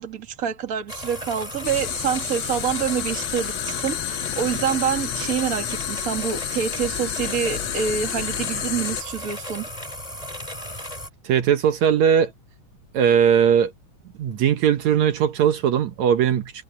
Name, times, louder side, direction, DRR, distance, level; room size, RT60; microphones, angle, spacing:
voice 1, 0.0-9.7, right 8 dB, 35° right, 2.0 m, -26 dB
sound 1, 0.9-11.1, equal, 10° left, 5.4 m, -35 dB
sound 2, 1.6-9.0, left 10 dB, 75° left, 1.1 m, -30 dB
voice 2, 11.2-12.3 12.9-13.7 14.2-16.5, right 8 dB, 70° right, 2.4 m, -19 dB
omnidirectional pair, 3.4 m